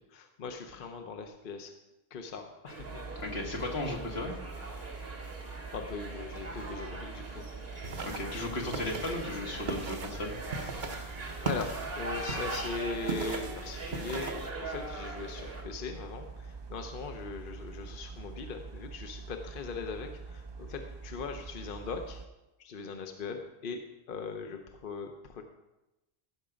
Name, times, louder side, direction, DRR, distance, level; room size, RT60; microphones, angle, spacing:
voice 1, 0.1-1.7 2.1-3.0 5.4-7.4 11.4-22.2 22.6-23.8 24.1-25.4, left 4 dB, 60° left, 5 dB, 0.9 m, -40 dB
sound 1, 2.7-15.6, right 2 dB, 75° right, 1.8 m, -42 dB
sound 2, 2.8-22.3, right 4 dB, 35° right, 0.5 m, -45 dB
voice 2, 3.2-4.3 8.0-10.3, left 2 dB, 85° left, 0 dB, 1.9 m, -35 dB
sound 3, 7.8-14.5, right 3 dB, 50° right, 1.0 m, -39 dB
15.5 x 5.9 x 5.1 m, 0.99 s
omnidirectional pair, 1.0 m